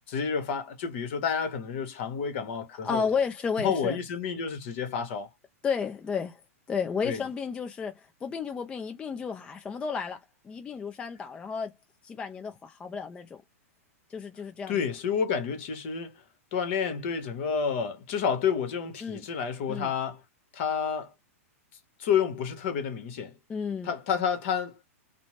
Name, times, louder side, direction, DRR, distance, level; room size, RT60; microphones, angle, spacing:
voice 1, 0.1-3.1 3.6-5.3 7.0-7.2 14.7-16.2 16.5-20.2 20.5-21.1 22.0-23.3 23.8-24.9, left 7 dB, 50° left, 1.0 m, -29 dB
voice 2, 2.8-4.0 5.6-6.4 6.7-11.7 12.0-13.4 14.1-14.8 19.0-19.2 19.7-19.9 23.5-23.9, left 6 dB, 10° left, 0.3 m, -32 dB
2.6 x 2.1 x 3.0 m
hypercardioid pair, 145°, 8 cm